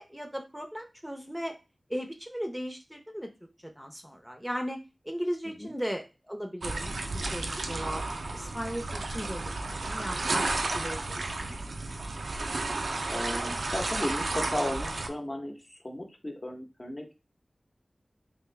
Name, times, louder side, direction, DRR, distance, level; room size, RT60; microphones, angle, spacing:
voice 1, 0.0-1.5 1.9-3.3 3.6-4.8 5.0-7.0 7.3-9.5 9.9-10.4 10.7-11.5, equal, 5° right, 3 dB, 0.7 m, -37 dB
sound 1, 6.6-15.1, right 2 dB, 90° right, 0.5 m, -32 dB
voice 2, 13.1-17.1, left 1 dB, 35° left, 2 dB, 0.9 m, -35 dB
3.5 x 2.7 x 3.2 m, 0.29 s
cardioid pair, 40°, 0 cm